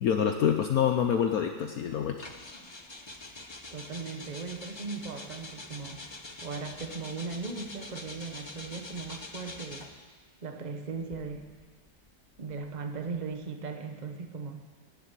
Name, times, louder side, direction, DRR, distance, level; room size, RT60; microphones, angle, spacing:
voice 1, 0.0-2.3, left 8 dB, 65° left, 6 dB, 1.1 m, -26 dB
sound 1, 2.2-10.1 10.9-13.4, left 2 dB, 25° left, 0.6 m, -45 dB
voice 2, 3.7-6.0 6.4-9.9 10.4-11.5 12.4-14.6, right 4 dB, 30° right, 5 dB, 1.1 m, -38 dB
16.5 x 7.6 x 9.0 m, 1.5 s
omnidirectional pair, 1.9 m